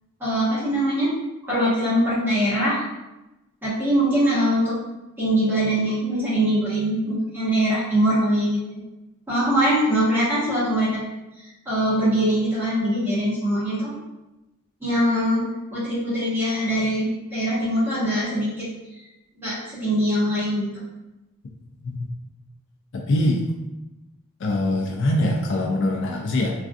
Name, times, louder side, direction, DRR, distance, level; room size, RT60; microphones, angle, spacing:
voice 1, 0.2-1.1 1.5-2.8 3.6-4.8 5.2-8.8 9.3-11.0 11.6-13.9 14.8-15.4 15.7-18.7 19.4-20.7, equal, 10° right, -11 dB, 1.3 m, -22 dB
voice 2, 22.9-23.5 24.4-26.5, left 1 dB, 55° left, 0 dB, 0.4 m, -23 dB
3.4 x 2.4 x 2.5 m, 0.99 s
head